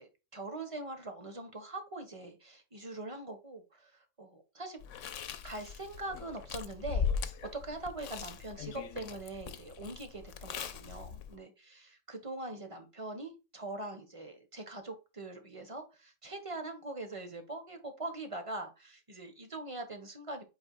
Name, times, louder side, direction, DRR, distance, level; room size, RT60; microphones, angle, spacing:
voice 1, 0.0-4.8 5.4-20.4, right 2 dB, 25° right, 6 dB, 1.3 m, -42 dB
Chewing mastication, 4.8-11.4, left 7 dB, 85° left, 1.0 m, -39 dB
8.5 x 4.7 x 2.3 m, 0.28 s
omnidirectional pair, 1.3 m